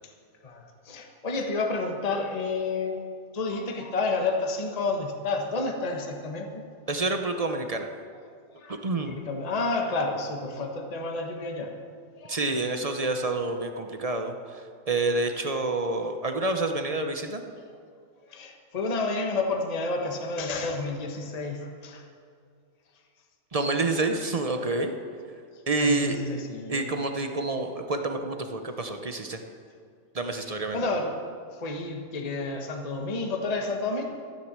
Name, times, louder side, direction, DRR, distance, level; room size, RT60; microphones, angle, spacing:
voice 1, 0.4-3.0 3.3-6.6 8.5-8.8 9.1-11.7 12.2-12.4 18.3-22.0 25.8-26.8 30.5-31.2 31.5-34.0, left 3 dB, 25° left, 3 dB, 1.3 m, -30 dB
voice 2, 6.9-7.9 8.7-9.2 12.3-17.4 23.5-24.9 25.7-26.2 26.7-29.4 30.1-30.8, right 2 dB, 40° right, 5 dB, 0.5 m, -28 dB
13.0 x 10.5 x 7.4 m, 2.2 s
omnidirectional pair, 1.9 m